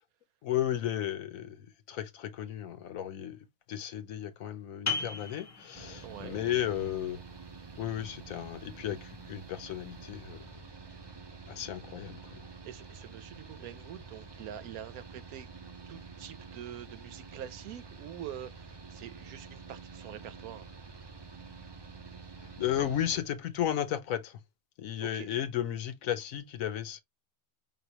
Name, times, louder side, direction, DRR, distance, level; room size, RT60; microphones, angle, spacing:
voice 1, 0.4-3.4 3.7-7.2 7.8-10.6 11.5-12.4 22.4-24.4 24.8-27.0, left 11 dB, 70° left, 1.1 m, -34 dB
sound 1, 4.9-10.2, left 4 dB, 15° left, 0.7 m, -41 dB
Mechanical fan, 5.7-23.2, right 4 dB, 30° right, 0.4 m, -48 dB
voice 2, 6.0-6.4 12.6-15.5 15.9-20.7 25.0-25.3, right 10 dB, 80° right, 1.1 m, -45 dB
5.4 x 3.0 x 2.8 m
omnidirectional pair, 1.6 m